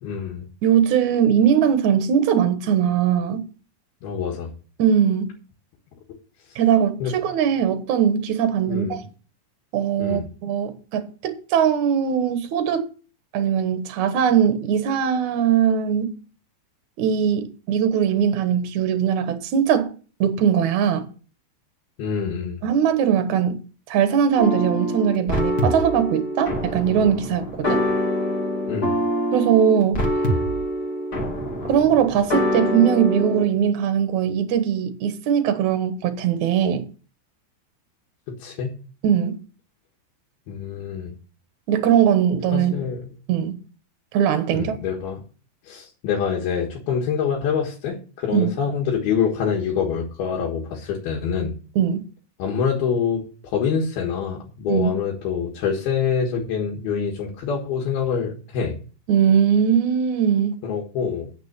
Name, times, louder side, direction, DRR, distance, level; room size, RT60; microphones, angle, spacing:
voice 1, 0.0-0.4 4.0-4.5 7.0-7.1 8.7-9.0 10.0-10.3 22.0-22.6 28.7-29.0 38.4-38.8 40.5-41.1 42.5-43.0 44.5-45.2 45.7-51.5 52.4-53.2 53.5-58.8 60.6-61.3, left 6 dB, 75° left, 3.4 m, -25 dB
voice 2, 0.6-3.4 4.8-5.3 6.6-9.0 9.7-12.9 13.3-16.1 17.0-19.9 20.2-21.1 22.6-23.6 23.9-27.8 29.3-30.0 31.7-36.9 39.0-39.4 41.7-42.7 43.3-43.5 44.1-44.8 48.3-48.6 51.8-52.0 54.7-54.9 59.1-60.6, right 8 dB, 60° right, 2.3 m, -20 dB
sound 1, 24.4-33.4, equal, 30° left, 1.9 m, -25 dB
9.3 x 6.6 x 6.7 m
omnidirectional pair, 4.5 m